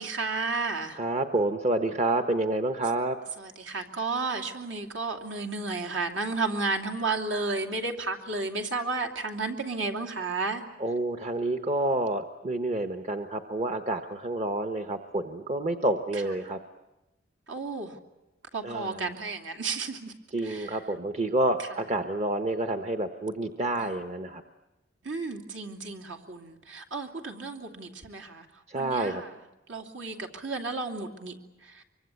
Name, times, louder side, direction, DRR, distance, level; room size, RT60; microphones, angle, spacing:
voice 1, 0.0-1.0 3.4-10.6 17.5-18.0 18.5-20.1 20.4-20.8 21.6-21.7 23.8-24.0 25.0-28.5 28.7-29.3 29.7-31.9, right 3 dB, 70° right, 4 dB, 2.7 m, -32 dB
voice 2, 0.9-3.2 10.8-16.6 18.6-19.0 20.3-24.4 28.7-29.2, right 2 dB, 35° right, 7 dB, 1.1 m, -28 dB
24.5 x 24.5 x 8.4 m, 1.0 s
head